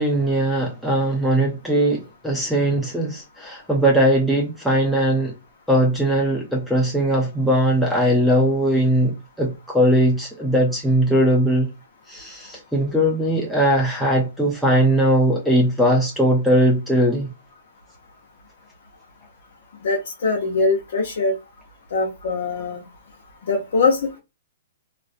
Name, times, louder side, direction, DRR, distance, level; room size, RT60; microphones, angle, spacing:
voice 1, 0.0-5.3 5.7-11.7 12.1-17.3, right 1 dB, ahead, 0.5 m, -19 dB
voice 2, 19.8-21.4 21.9-22.8 23.4-24.2, left 3 dB, 70° left, 0.7 m, -22 dB
2.4 x 2.1 x 2.5 m
hypercardioid pair, 145°, 0 cm